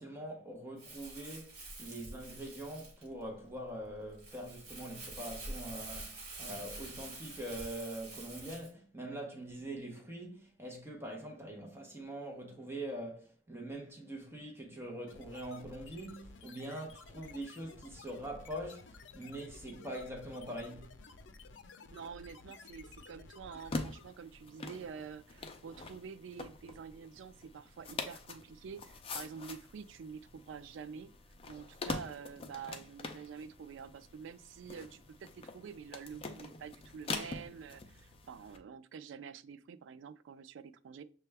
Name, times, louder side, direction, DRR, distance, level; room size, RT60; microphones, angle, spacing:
voice 1, 0.0-20.9, right 1 dB, 15° right, 0.7 m, -43 dB
Crumpling crinkling, 0.8-8.7, right 2 dB, 35° right, 1.5 m, -47 dB
sound 1, 15.1-24.2, left 3 dB, 80° left, 0.5 m, -54 dB
voice 2, 21.9-31.1 31.5-41.0, right 6 dB, 80° right, 0.3 m, -48 dB
sound 2, 23.6-38.6, left 3 dB, 30° left, 0.4 m, -45 dB
6.6 x 2.2 x 3.3 m
head